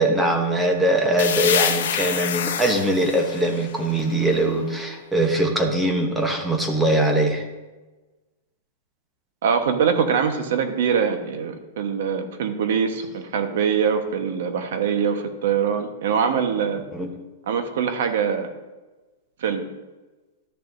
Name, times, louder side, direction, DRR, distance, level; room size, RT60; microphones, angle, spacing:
voice 1, 0.0-7.5 16.9-17.1, right 1 dB, 5° right, 2 dB, 1.0 m, -21 dB
sound 1, 1.2-4.8, left 8 dB, 75° left, 0.9 m, -27 dB
voice 2, 9.4-16.9 17.5-18.5 19.4-19.7, right 7 dB, 70° right, 6 dB, 1.2 m, -23 dB
12.5 x 6.9 x 2.7 m, 1.2 s
supercardioid pair, 160°, 0 cm